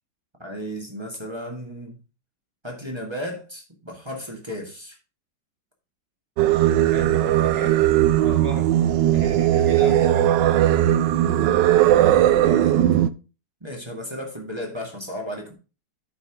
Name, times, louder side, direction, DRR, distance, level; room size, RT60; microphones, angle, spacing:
voice 1, 0.4-2.0 2.6-5.0 8.2-8.4 11.7-12.8 13.6-15.5, equal, 15° right, 2.1 m, -34 dB
Singing, 6.4-13.1, right 12 dB, 80° right, 1.2 m, -18 dB
voice 2, 6.7-7.8 8.2-8.7 9.1-11.0, left 1 dB, 20° left, 1.5 m, -36 dB
11.5 x 5.4 x 3.7 m
omnidirectional pair, 2.0 m